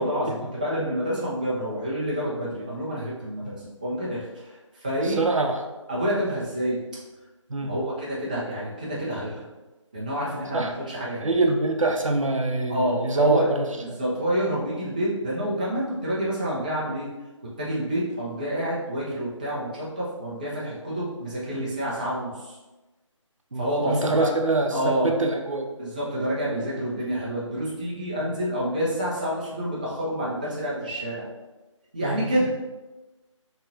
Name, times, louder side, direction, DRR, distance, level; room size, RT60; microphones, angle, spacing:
voice 1, 0.0-4.5 4.8-5.2 5.9-6.8 7.6-9.5 9.9-11.4 12.7-13.5 13.8-17.1 17.6-22.5 23.6-24.3 24.7-25.1 25.8-31.3 31.9-32.6, equal, 15° right, -7 dB, 0.4 m, -28 dB
voice 2, 5.0-5.6 7.5-7.7 10.5-10.7 11.2-14.0 23.5-25.7 32.0-32.2, right 3 dB, 75° right, 3 dB, 0.6 m, -24 dB
4.4 x 2.9 x 2.5 m, 1.1 s
figure-of-eight pair, 155°, 17 cm